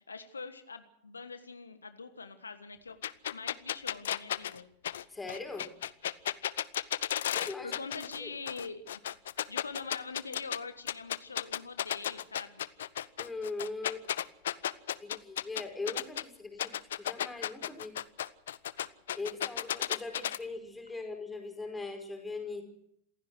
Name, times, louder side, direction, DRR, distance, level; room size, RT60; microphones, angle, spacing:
voice 1, 0.0-3.0 3.3-4.7 7.6-9.0 9.5-12.6, left 4 dB, 75° left, 9 dB, 1.5 m, -43 dB
sound 1, 3.0-8.2 8.5-10.6 10.9-16.2 16.6-20.4, left 11 dB, 60° left, 0.8 m, -34 dB
voice 2, 5.1-5.7 7.3-7.9 8.2-8.3 13.2-14.1 15.0-16.7 17.0-17.9 19.1-22.7, left 3 dB, 10° left, 4 dB, 5.4 m, -40 dB
27.5 x 16.0 x 6.3 m, 0.73 s
figure-of-eight pair, 90°, 0 cm